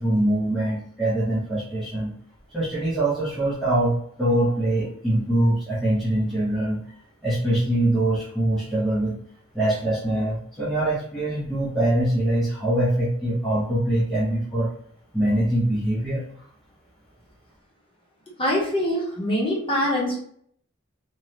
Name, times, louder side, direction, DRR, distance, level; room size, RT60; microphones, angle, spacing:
voice 1, 0.0-2.1 2.5-6.8 7.2-9.2 9.5-14.7 15.1-16.2, right 1 dB, ahead, -9 dB, 0.6 m, -23 dB
voice 2, 18.4-20.2, left 1 dB, 25° left, -3 dB, 0.9 m, -24 dB
3.0 x 2.3 x 2.6 m, 0.65 s
head